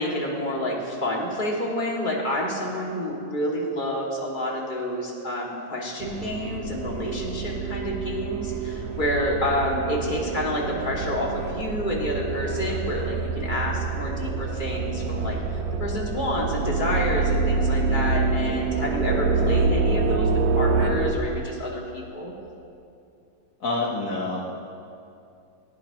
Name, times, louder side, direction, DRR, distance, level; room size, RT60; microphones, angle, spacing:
voice 1, 0.0-15.4 15.7-22.3, left 1 dB, 20° left, -3 dB, 1.9 m, -28 dB
sound 1, 6.0-21.1, right 4 dB, 65° right, 1.5 m, -26 dB
voice 2, 23.6-24.4, left 2 dB, 60° left, -3 dB, 0.8 m, -27 dB
19.0 x 17.0 x 3.0 m, 2.6 s
omnidirectional pair, 3.3 m